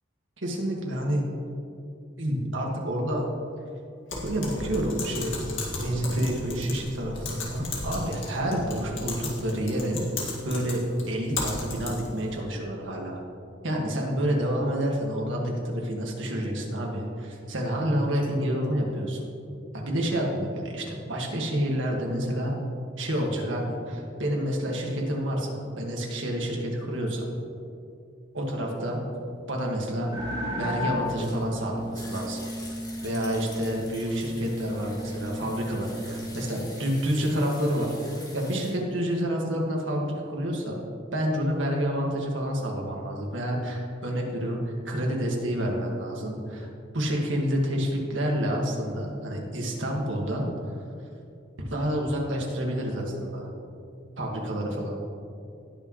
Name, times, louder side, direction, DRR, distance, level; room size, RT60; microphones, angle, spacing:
voice 1, 0.4-1.3 2.2-3.2 4.2-5.5 5.7-10.0 10.4-10.8 11.1-13.2 13.6-19.3 19.7-22.5 23.0-27.3 28.3-29.0 29.5-30.1 30.5-32.4 33.0-40.7 41.1-46.7 46.9-50.8 51.7-53.5 54.2-54.9, equal, 75° right, -1 dB, 1.9 m, -29 dB
Typing, 4.1-12.2, left 2 dB, 80° left, 2.1 m, -35 dB
sound 1, 30.1-36.5, left 1 dB, 20° right, 2.6 m, -34 dB
sound 2, 30.6-38.7, left 2 dB, 20° left, 2.3 m, -46 dB
19.0 x 6.3 x 3.2 m, 2.5 s
head